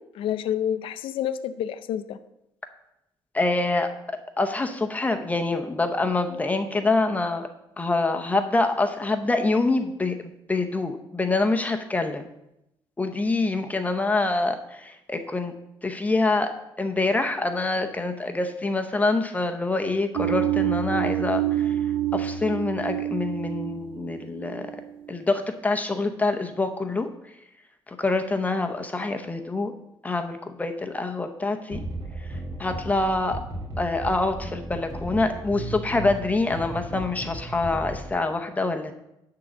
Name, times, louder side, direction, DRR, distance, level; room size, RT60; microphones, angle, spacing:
voice 1, 0.2-2.2, left 10 dB, 80° left, 11 dB, 0.6 m, -28 dB
voice 2, 3.3-3.9 4.4-7.5 7.8-12.2 13.0-15.5 15.8-16.5 16.8-21.8 22.1-24.7 25.1-27.1 28.0-29.7 30.0-31.8 32.6-33.4 33.8-38.9, left 3 dB, 15° left, 6 dB, 0.8 m, -25 dB
sound 1, 20.2-25.2, right 12 dB, 85° right, 0.7 m, -27 dB
sound 2, 31.7-38.1, right 1 dB, 45° right, 2.3 m, -35 dB
11.5 x 3.9 x 7.2 m, 0.85 s
cardioid pair, 115°, 9 cm